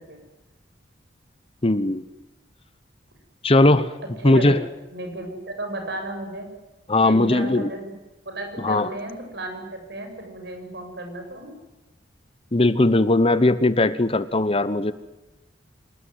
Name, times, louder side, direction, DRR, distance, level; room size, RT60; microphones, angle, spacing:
voice 1, 1.6-2.0 3.4-3.9 4.2-4.6 6.9-7.7 8.6-8.9 12.5-14.9, left 2 dB, 35° left, 14 dB, 1.1 m, -19 dB
voice 2, 4.2-4.6 4.9-6.5 7.0-7.9 8.2-11.5, right 1 dB, 65° right, 5 dB, 7.6 m, -33 dB
26.5 x 19.5 x 9.5 m, 1.0 s
head